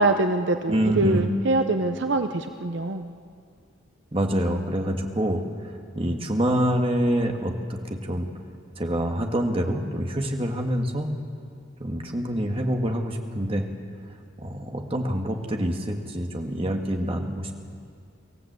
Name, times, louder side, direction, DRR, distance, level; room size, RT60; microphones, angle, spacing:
voice 1, 0.0-3.1, right 2 dB, 65° right, 7 dB, 0.8 m, -24 dB
voice 2, 0.7-1.3 4.1-5.4 6.0-8.3 8.8-11.1 11.8-13.7 14.4-17.5, equal, 30° right, 3 dB, 1.7 m, -26 dB
24.0 x 15.5 x 8.1 m, 2.2 s
head